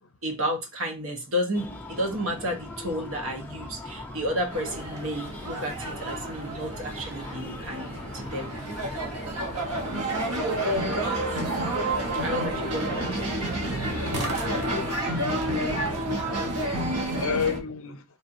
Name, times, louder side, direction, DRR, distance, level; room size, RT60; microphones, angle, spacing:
voice 1, 0.2-8.5 12.2-13.3 16.4-16.8, equal, 65° right, 1.1 m, -32 dB
Breathing, 1.5-17.1, left 1 dB, 10° left, 0.5 m, -41 dB
sound 1, 4.5-17.6, right 1 dB, 90° right, 1.1 m, -30 dB
voice 2, 12.5-12.9 14.4-15.1 16.8-18.0, left 5 dB, 65° left, 0.6 m, -33 dB
4.4 x 3.3 x 2.6 m
head